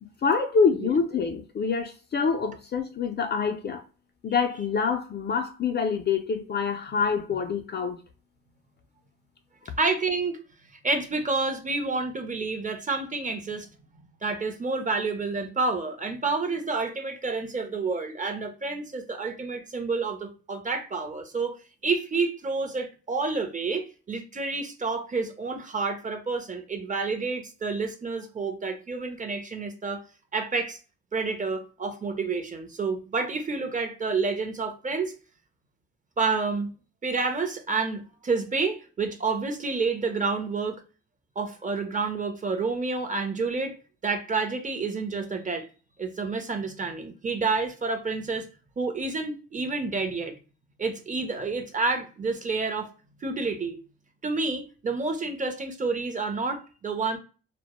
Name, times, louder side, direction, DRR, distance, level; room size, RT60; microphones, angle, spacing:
voice 1, 0.0-3.8 4.2-8.0, left 5 dB, 35° left, 0.4 m, -26 dB
voice 2, 9.8-10.4 10.8-13.7 14.2-21.6 21.8-30.0 30.3-30.8 31.1-35.1 36.2-36.7 37.0-40.8 41.4-43.7 44.0-45.7 46.0-48.4 48.8-50.3 50.8-52.9 53.2-53.8 54.2-57.2, right 4 dB, 25° right, 0.6 m, -29 dB
2.0 x 2.0 x 2.9 m
cardioid pair, 90°, 30 cm